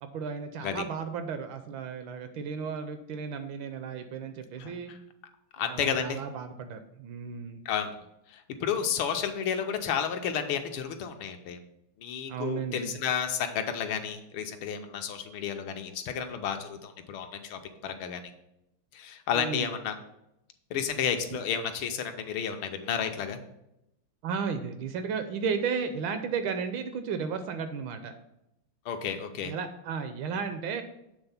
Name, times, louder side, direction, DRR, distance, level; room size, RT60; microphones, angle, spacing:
voice 1, 0.0-4.9 5.7-7.6 12.3-13.0 19.3-19.7 21.3-21.4 24.2-28.1 29.4-30.8, right 6 dB, 75° right, 8 dB, 1.2 m, -34 dB
voice 2, 5.6-6.2 7.6-7.9 8.3-11.6 12.0-18.2 18.9-19.9 20.7-23.4 28.9-29.5, left 7 dB, 80° left, 6 dB, 1.5 m, -31 dB
8.0 x 3.6 x 5.6 m, 0.84 s
omnidirectional pair, 2.4 m